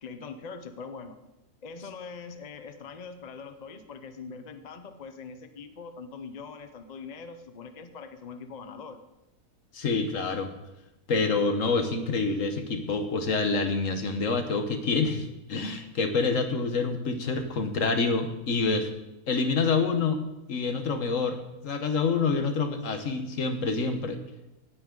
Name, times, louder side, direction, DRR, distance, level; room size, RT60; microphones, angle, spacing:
voice 1, 0.0-1.2 1.6-9.0, left 5 dB, 40° left, 8 dB, 0.6 m, -42 dB
voice 2, 9.7-10.5 11.1-18.9 19.3-20.2 20.5-24.2, left 4 dB, 55° left, 7 dB, 1.4 m, -27 dB
18.0 x 9.0 x 3.9 m, 0.95 s
omnidirectional pair, 1.7 m